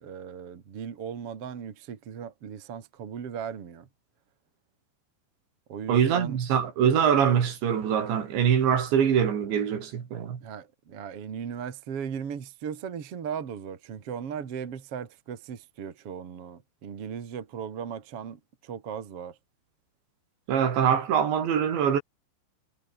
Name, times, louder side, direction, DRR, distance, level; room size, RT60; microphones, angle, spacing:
voice 1, 0.0-3.9 5.7-6.4 10.4-19.4, right 7 dB, 40° right, 2.3 m, -37 dB
voice 2, 5.9-10.4 20.5-22.0, right 8 dB, 65° right, 5.4 m, -23 dB
omnidirectional pair, 5.7 m